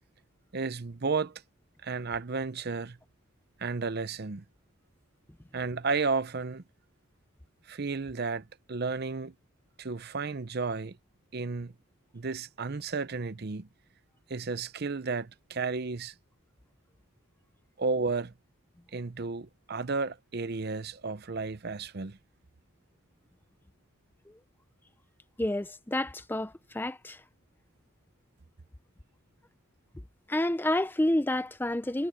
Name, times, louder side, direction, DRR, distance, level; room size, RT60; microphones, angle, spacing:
voice 1, 0.5-1.4 1.8-3.0 3.6-4.4 5.5-6.6 7.7-9.3 9.8-11.0 11.3-11.7 12.1-13.7 14.3-16.1 17.8-18.3 18.9-22.2, right 4 dB, 50° right, 0.7 m, -32 dB
voice 2, 25.4-27.2 30.3-32.1, left 1 dB, 10° left, 0.5 m, -29 dB
head